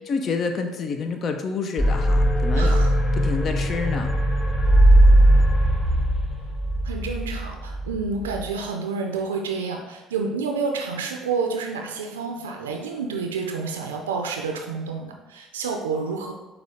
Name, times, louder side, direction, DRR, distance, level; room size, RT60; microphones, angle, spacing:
voice 1, 0.1-2.8 3.2-4.1, left 4 dB, 50° left, 6 dB, 0.6 m, -28 dB
sound 1, 1.8-8.5, right 1 dB, 15° left, 0.7 m, -19 dB
voice 2, 2.6-3.0 6.8-16.3, right 4 dB, 90° right, 3 dB, 0.4 m, -29 dB
6.2 x 2.3 x 3.6 m, 1.1 s
hypercardioid pair, 65°, 0 cm